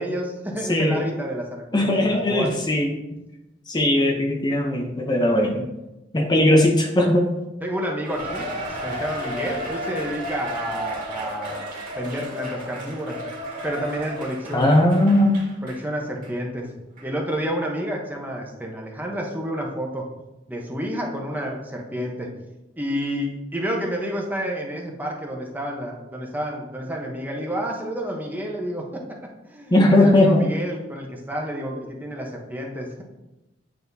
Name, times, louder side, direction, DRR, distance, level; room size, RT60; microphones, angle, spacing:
voice 1, 0.0-2.5 7.6-11.7 12.0-13.2 13.6-14.8 15.6-16.7 17.0-20.1 20.5-22.3 22.8-29.0 29.5-33.0, equal, 10° right, 0 dB, 0.8 m, -30 dB
voice 2, 0.7-1.0 1.7-2.9 3.7-5.7 6.1-7.3 14.5-15.4 29.7-30.5, left 1 dB, 25° left, 1 dB, 0.6 m, -18 dB
Cheering, 8.0-15.8 16.2-16.3 17.0-17.1, equal, 45° right, 1.9 m, -33 dB
9.1 x 4.2 x 2.7 m, 0.98 s
head